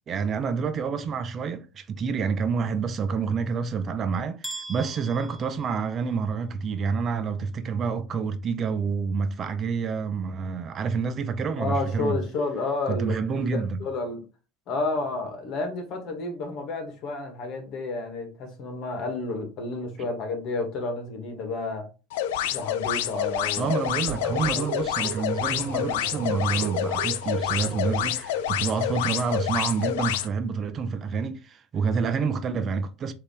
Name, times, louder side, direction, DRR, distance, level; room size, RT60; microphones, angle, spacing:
voice 1, 0.1-12.2 12.9-13.8 20.0-20.1 23.6-33.1, right 5 dB, 40° right, 0.6 m, -28 dB
sound 1, 4.4-6.4, right 2 dB, ahead, 0.8 m, -41 dB
voice 2, 11.6-14.2 14.7-21.9 22.5-23.7 24.2-24.7, left 3 dB, 55° left, 1.8 m, -31 dB
sound 2, 22.1-30.3, left 11 dB, 90° left, 0.4 m, -28 dB
sound 3, 24.1-28.5, right 7 dB, 65° right, 1.1 m, -37 dB
5.0 x 3.0 x 3.3 m
supercardioid pair, 110°, 0 cm